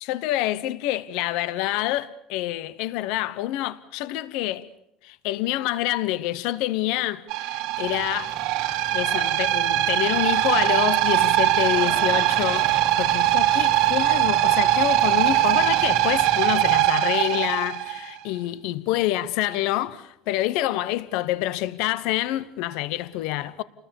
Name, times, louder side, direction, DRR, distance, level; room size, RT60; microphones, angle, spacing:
voice 1, 0.0-4.7 5.0-8.4 8.9-12.7 13.0-23.6, left 15 dB, 70° left, 1.0 m, -27 dB
sound 1, 7.3-18.1, right 15 dB, 65° right, 1.7 m, -21 dB
sound 2, 7.8-16.8, left 1 dB, 5° right, 2.2 m, -40 dB
29.5 x 20.5 x 7.0 m
cardioid pair, 170°, 0 cm